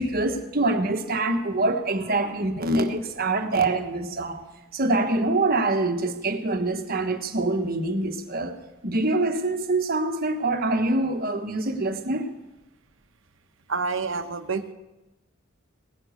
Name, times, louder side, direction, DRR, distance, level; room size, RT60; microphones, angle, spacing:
voice 1, 0.0-4.4 4.7-8.6 8.8-12.3, right 2 dB, 50° right, 1.3 m, -25 dB
voice 2, 13.7-14.7, right 4 dB, 75° right, 1.0 m, -28 dB
18.0 x 10.0 x 6.6 m
head